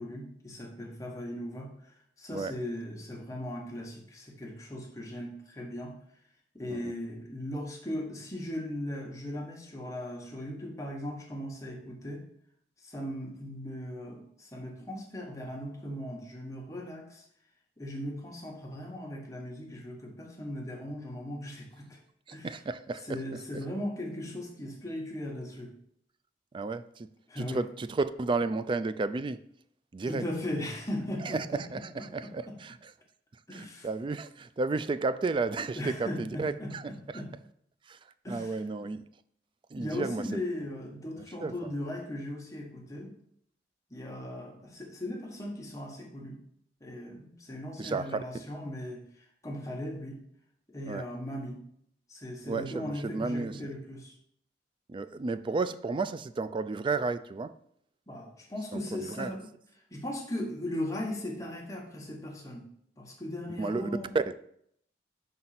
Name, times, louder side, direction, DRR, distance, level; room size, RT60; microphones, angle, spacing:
voice 1, 0.0-5.9 6.5-12.2 12.8-17.2 17.8-22.0 22.3-22.6 23.0-25.7 27.3-27.6 30.1-32.6 33.5-33.9 35.7-37.3 38.2-38.6 39.8-43.1 43.9-46.4 46.8-50.2 50.7-51.6 52.1-54.1 58.1-59.5 59.9-62.7 63.0-64.1, left 1 dB, 20° left, 1.3 m, -38 dB
voice 2, 22.3-23.0 26.5-27.1 27.4-29.4 29.9-30.2 31.2-32.9 33.5-36.9 37.9-38.0 38.3-39.0 39.7-40.2 41.4-41.5 47.8-48.2 50.8-51.0 52.5-53.6 54.9-57.5 58.7-59.3 63.6-63.9 64.1-64.3, right 3 dB, 30° right, 0.3 m, -32 dB
5.2 x 4.0 x 5.9 m
head